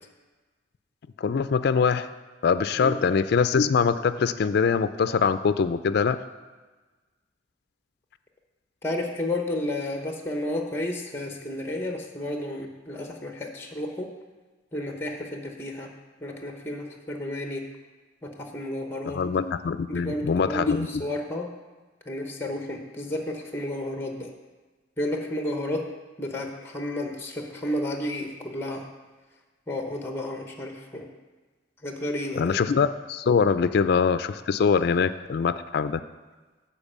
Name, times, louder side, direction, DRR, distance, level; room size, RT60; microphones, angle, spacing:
voice 1, 1.2-2.1 2.4-6.2 19.1-21.0 32.4-36.0, left 5 dB, 60° left, 12 dB, 0.4 m, -23 dB
voice 2, 8.8-14.1 14.7-15.9 16.2-17.7 18.2-19.2 19.9-21.5 22.1-24.3 25.0-25.9 26.2-28.9 29.7-31.1 31.8-32.6, left 1 dB, 15° left, 3 dB, 0.9 m, -32 dB
10.5 x 4.4 x 7.2 m, 1.3 s
head